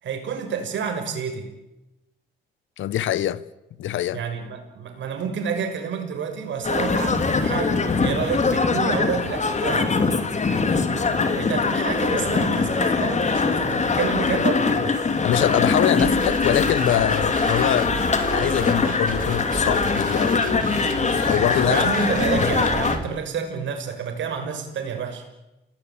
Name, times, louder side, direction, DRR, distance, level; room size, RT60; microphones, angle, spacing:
voice 1, 0.0-1.5 4.1-9.9 11.3-15.0 21.6-25.2, right 6 dB, 70° right, 6.2 m, -29 dB
voice 2, 2.8-3.4 3.8-4.2 15.2-17.9 18.3-20.7 21.3-21.9, left 12 dB, 75° left, 1.3 m, -24 dB
sound 1, 6.6-23.0, left 4 dB, 35° left, 3.0 m, -22 dB
sound 2, 16.0-23.0, right 5 dB, 45° right, 4.7 m, -33 dB
29.5 x 19.0 x 8.8 m
cardioid pair, 90°, 20 cm